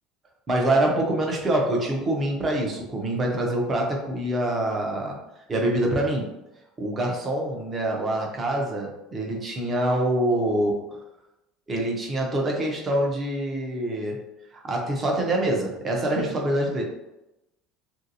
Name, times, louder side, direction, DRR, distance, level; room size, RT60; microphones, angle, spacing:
voice 1, 0.5-5.2 5.5-6.2 6.8-10.7 11.7-14.2 14.6-16.8, right 1 dB, 20° right, 0 dB, 0.6 m, -25 dB
3.2 x 2.6 x 2.6 m, 0.93 s
cardioid pair, 170°, 0 cm